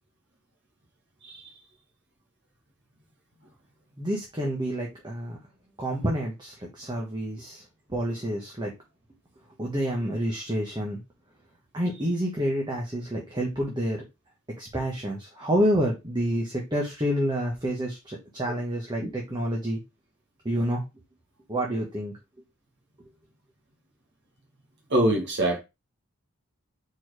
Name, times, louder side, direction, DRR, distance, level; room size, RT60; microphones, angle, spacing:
voice 1, 4.0-5.4 5.8-7.6 7.9-8.7 9.6-11.0 11.7-14.0 14.6-19.8 20.4-20.8 21.5-22.1, equal, 20° right, 1.4 m, -28 dB
voice 2, 24.9-25.6, right 1 dB, 50° right, 1.7 m, -24 dB
4.6 x 4.4 x 4.9 m
head